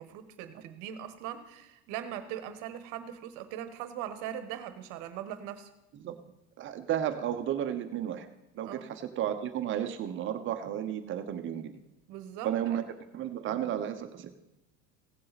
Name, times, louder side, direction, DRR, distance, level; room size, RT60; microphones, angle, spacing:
voice 1, 0.0-5.7 8.6-8.9 12.1-12.8, right 10 dB, 55° right, 11 dB, 1.2 m, -40 dB
voice 2, 6.6-8.3 8.5-11.8 12.4-12.8 13.1-14.3, right 10 dB, 35° right, 8 dB, 0.9 m, -33 dB
16.5 x 7.5 x 4.1 m, 0.95 s
supercardioid pair, 140°, 36 cm